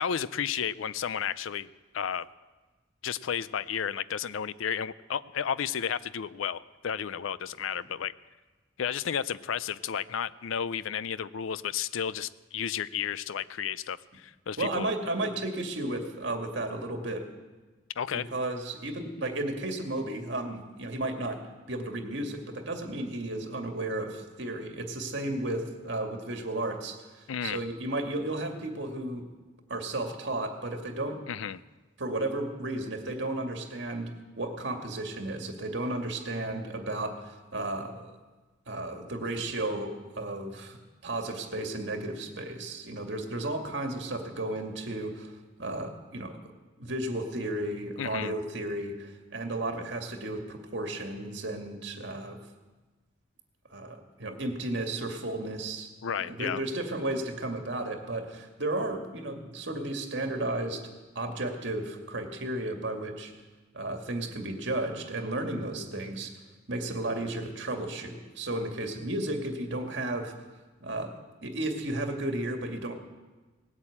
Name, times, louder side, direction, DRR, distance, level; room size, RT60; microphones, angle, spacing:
voice 1, 0.0-1.7 1.9-2.3 3.0-8.1 8.8-14.9 18.0-18.3 27.3-27.6 31.3-31.6 48.0-48.3 56.0-56.6, left 8 dB, 90° left, 17 dB, 0.5 m, -32 dB
voice 2, 14.6-17.3 18.1-21.4 21.7-29.3 29.7-31.2 32.0-38.1 38.7-40.8 41.0-46.4 46.8-52.4 53.7-55.9 56.2-60.9 61.2-63.3 63.7-66.3 66.7-70.3 70.8-71.1 71.4-73.0, right 2 dB, 65° right, 4 dB, 2.1 m, -33 dB
18.5 x 8.9 x 8.5 m, 1.2 s
head